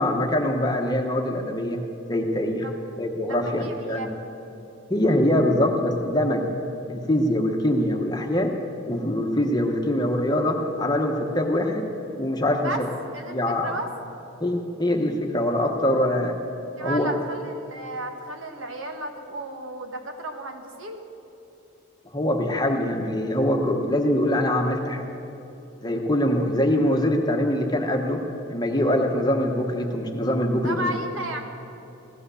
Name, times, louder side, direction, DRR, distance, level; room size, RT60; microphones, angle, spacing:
voice 1, 0.0-1.8 2.1-2.7 3.0-4.1 4.9-6.5 6.9-8.5 8.8-11.9 12.2-12.9 13.3-13.7 14.4-16.4 16.8-17.1 22.1-25.1 25.8-28.2 28.5-30.9, left 1 dB, 20° left, 2 dB, 1.1 m, -23 dB
voice 2, 3.3-4.1 12.6-12.8 13.1-13.9 16.8-21.0 30.6-31.4, right 1 dB, 70° right, 4 dB, 1.5 m, -33 dB
16.5 x 12.0 x 7.0 m, 2.9 s
head